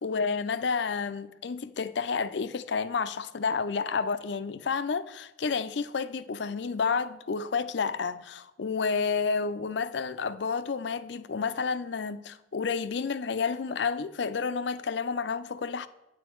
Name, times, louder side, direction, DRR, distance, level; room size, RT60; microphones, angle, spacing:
voice 1, 0.0-15.9, left 5 dB, 65° left, 0.5 m, -30 dB
9.2 x 8.3 x 4.5 m
head